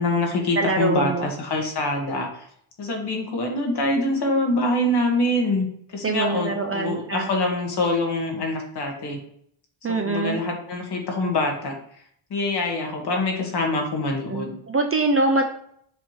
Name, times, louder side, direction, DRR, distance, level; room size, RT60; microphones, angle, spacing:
voice 1, 0.0-2.5 2.8-9.2 9.9-11.8 12.3-14.6, left 2 dB, 50° left, 1 dB, 1.5 m, -25 dB
voice 2, 0.6-1.3 6.0-7.3 9.8-10.4 14.3-15.4, right 3 dB, 30° right, 4 dB, 0.5 m, -24 dB
7.1 x 2.9 x 4.9 m, 0.68 s
wide cardioid pair, 155°, 50 cm